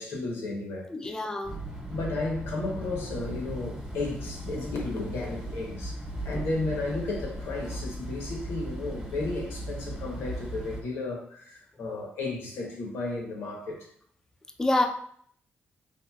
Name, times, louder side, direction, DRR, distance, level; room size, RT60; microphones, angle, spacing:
voice 1, 0.0-1.2 1.9-6.0 6.2-13.9, left 2 dB, 80° left, -1 dB, 0.8 m, -33 dB
voice 2, 0.9-1.6 14.6-14.9, left 2 dB, 15° left, 3 dB, 0.3 m, -26 dB
sound 1, 1.4-10.8, right 1 dB, 15° right, 1.0 m, -37 dB
3.0 x 2.5 x 2.2 m, 0.62 s
cardioid pair, 75°, 4 cm